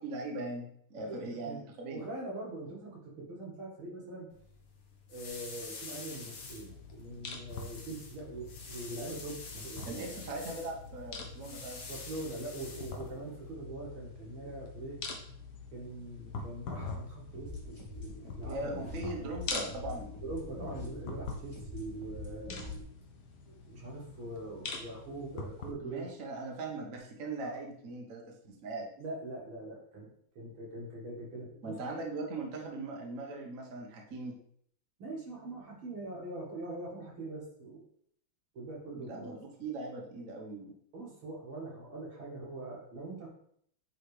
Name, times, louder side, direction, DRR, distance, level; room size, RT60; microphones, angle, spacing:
voice 1, 0.0-2.0 9.9-11.8 18.2-20.1 25.8-28.9 31.6-34.3 38.9-40.7, right 2 dB, 45° right, 0 dB, 1.3 m, -40 dB
voice 2, 1.0-1.6 1.9-4.3 5.1-10.4 11.9-15.0 15.7-19.0 20.2-22.6 23.5-26.1 29.0-30.1 30.4-31.8 35.0-37.8 38.5-39.4 40.9-43.3, right 2 dB, 80° right, -2 dB, 2.7 m, -43 dB
sound 1, 4.3-13.5, left 4 dB, 85° left, 2.1 m, -48 dB
sound 2, 6.1-25.7, left 4 dB, 60° left, 1.4 m, -45 dB
sound 3, 17.3-22.8, left 2 dB, 15° left, 1.0 m, -44 dB
9.1 x 4.0 x 3.3 m, 0.66 s
omnidirectional pair, 2.3 m